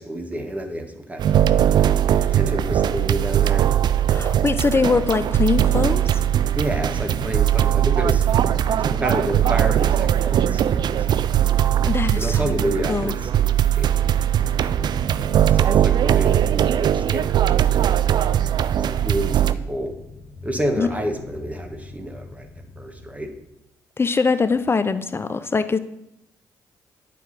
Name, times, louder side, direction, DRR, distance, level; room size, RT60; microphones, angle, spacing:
voice 1, 0.0-1.4 2.3-3.7 6.5-8.2 8.8-11.1 12.2-14.1 15.5-17.9 18.7-19.9 20.4-22.5 22.8-23.3, right 1 dB, 15° right, 3 dB, 1.4 m, -29 dB
sound 1, 1.2-19.5, right 10 dB, 55° right, 0.3 m, -20 dB
Purr, 4.1-23.5, left 3 dB, 50° left, 1.0 m, -40 dB
voice 2, 4.1-6.2 11.9-12.6 12.9-13.1 20.8-20.9 24.0-25.8, left 4 dB, 25° left, 13 dB, 0.6 m, -22 dB
9.3 x 4.6 x 4.1 m, 0.83 s
hypercardioid pair, 45°, 9 cm